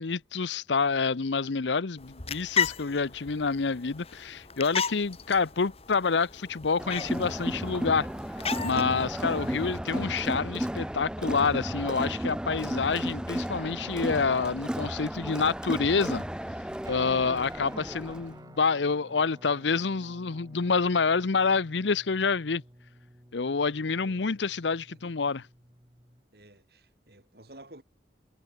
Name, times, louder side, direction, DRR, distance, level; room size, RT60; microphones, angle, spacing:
voice 1, 0.0-8.1 8.6-16.2 16.9-22.6 23.3-25.5, left 4 dB, 85° left, 0.8 m, -27 dB
sound 1, 2.0-9.8, left 6 dB, 35° left, 1.6 m, -35 dB
Crowd, 6.8-18.3, equal, 5° right, 0.5 m, -33 dB
Guitar, 16.8-26.2, right 1 dB, 20° right, 2.8 m, -53 dB
voice 2, 26.3-27.8, right 1 dB, 60° right, 4.6 m, -52 dB
head